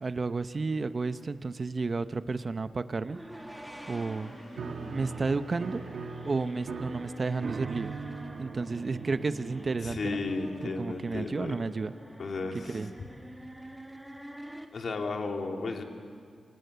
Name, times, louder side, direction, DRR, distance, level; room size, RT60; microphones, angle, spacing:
voice 1, 0.0-3.2 3.9-4.4 4.9-5.8 6.2-8.0 8.4-10.2 10.8-11.9 12.7-12.9, right 3 dB, 35° right, 11 dB, 0.8 m, -32 dB
sound 1, 2.9-14.7, equal, 5° right, 1.9 m, -46 dB
sound 2, 3.3-8.4, left 2 dB, 80° left, 7.4 m, -55 dB
Piano, 4.6-11.3, right 5 dB, 65° right, 1.5 m, -41 dB
voice 2, 9.8-11.5 12.2-13.1 14.7-15.8, left 3 dB, 55° left, 3 dB, 2.7 m, -34 dB
29.0 x 26.0 x 6.9 m, 2.2 s
wide cardioid pair, 120°, 0 cm